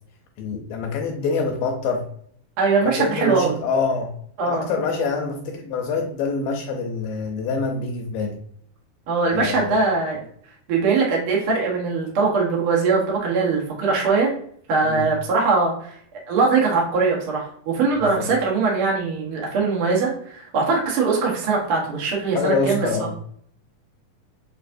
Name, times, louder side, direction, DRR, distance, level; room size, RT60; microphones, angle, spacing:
voice 1, 0.4-2.0 2.8-4.1 4.5-8.4 9.2-9.8 14.8-15.1 18.0-18.3 22.4-23.2, left 4 dB, 80° left, 2 dB, 2.1 m, -26 dB
voice 2, 2.6-3.6 4.4-5.0 9.1-10.2 10.7-14.3 14.7-15.9 16.3-23.1, right 4 dB, 90° right, -2 dB, 1.2 m, -21 dB
6.7 x 2.6 x 2.6 m, 0.63 s
omnidirectional pair, 4.3 m